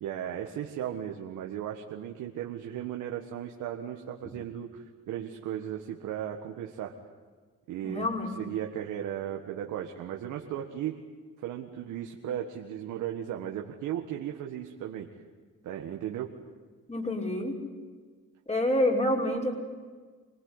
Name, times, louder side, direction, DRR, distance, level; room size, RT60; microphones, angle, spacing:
voice 1, 0.0-6.9 7.7-8.1 8.4-11.0 11.4-15.1 15.6-16.3, right 10 dB, 90° right, 2 dB, 1.8 m, -36 dB
voice 2, 7.8-8.4 16.9-17.6 18.5-19.6, left 1 dB, 20° left, 1 dB, 5.7 m, -28 dB
26.0 x 19.5 x 9.9 m, 1.5 s
cardioid pair, 90°, 30 cm